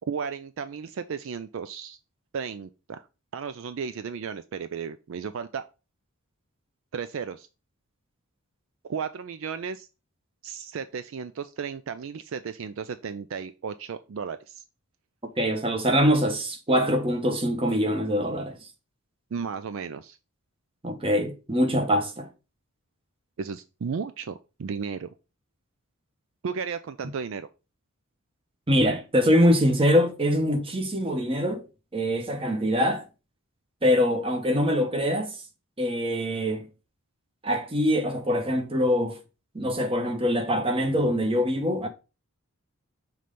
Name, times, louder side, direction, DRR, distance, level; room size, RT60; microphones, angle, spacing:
voice 1, 0.1-2.0 2.3-3.0 3.3-5.6 6.9-7.5 8.8-9.9 10.4-14.6 19.3-20.2 23.4-25.1 26.4-27.5, right 6 dB, 65° right, 0.4 m, -34 dB
voice 2, 15.4-18.6 20.8-22.3 28.7-31.6 31.9-33.1 33.8-35.3 35.8-36.7 37.4-39.2 39.5-41.9, equal, 25° right, 1.0 m, -24 dB
5.9 x 3.2 x 5.1 m
head